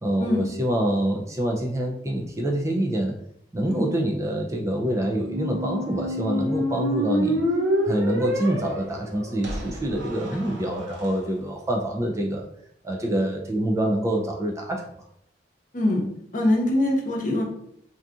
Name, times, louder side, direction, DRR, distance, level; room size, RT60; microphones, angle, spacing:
voice 1, 0.0-3.1 3.5-7.4 7.8-12.5 12.8-14.8, right 1 dB, 15° right, 0 dB, 0.3 m, -26 dB
Squeak, 5.1-11.1, equal, 80° right, 0.7 m, -28 dB
voice 2, 15.7-16.0 16.3-17.4, left 1 dB, 45° left, 0 dB, 0.7 m, -23 dB
2.6 x 2.4 x 3.5 m, 0.70 s
head